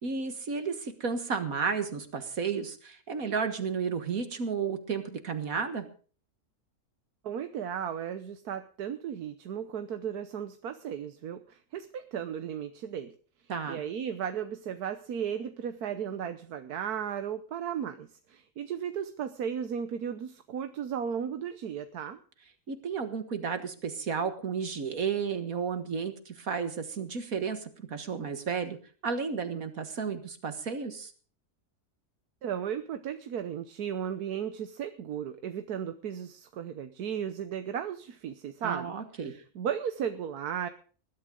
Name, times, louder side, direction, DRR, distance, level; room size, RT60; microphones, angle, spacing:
voice 1, 0.0-5.9 13.5-13.8 22.7-28.8 29.0-31.1 38.6-39.3, right 5 dB, 65° right, 8 dB, 2.0 m, -32 dB
voice 2, 7.2-13.1 13.7-22.2 32.4-40.7, right 8 dB, 85° right, 9 dB, 1.4 m, -35 dB
20.5 x 12.0 x 3.8 m, 0.40 s
omnidirectional pair, 1.6 m